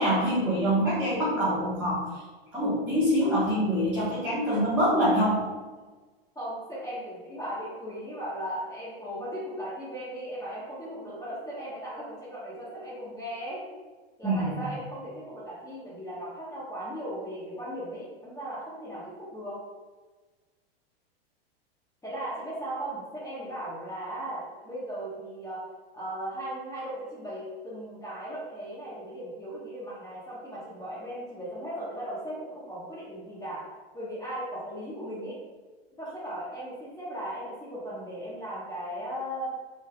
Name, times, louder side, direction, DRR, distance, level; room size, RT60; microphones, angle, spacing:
voice 1, 0.0-2.1 2.5-5.4 14.2-14.5, equal, 5° right, -12 dB, 1.5 m, -25 dB
voice 2, 6.3-13.8 14.2-19.6 22.0-25.6 25.9-33.6 33.9-35.4 36.0-39.5, right 1 dB, 10° left, -9 dB, 1.3 m, -37 dB
6.2 x 3.5 x 2.4 m, 1.3 s
hypercardioid pair, 120°, 31 cm